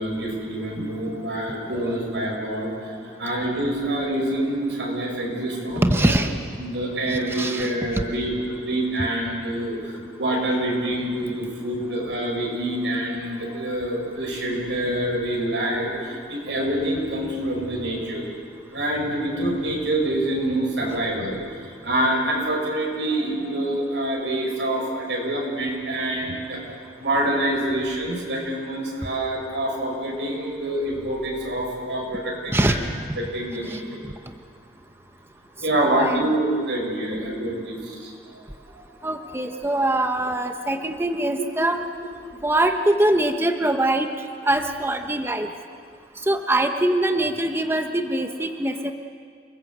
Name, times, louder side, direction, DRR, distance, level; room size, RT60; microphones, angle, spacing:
voice 1, 0.0-6.1 6.6-18.2 18.7-21.4 21.8-26.7 27.0-32.8 33.2-34.0 35.6-38.4 39.2-39.3 47.2-47.3, right 1 dB, 85° right, -1 dB, 6.9 m, -26 dB
voice 2, 5.8-6.3 7.1-7.7 32.5-32.8 33.7-33.8 35.7-36.3 39.0-41.8 42.4-44.1 44.4-45.5 46.3-48.9, right 1 dB, 15° right, 5 dB, 1.0 m, -23 dB
29.5 x 20.5 x 8.1 m, 2.1 s
head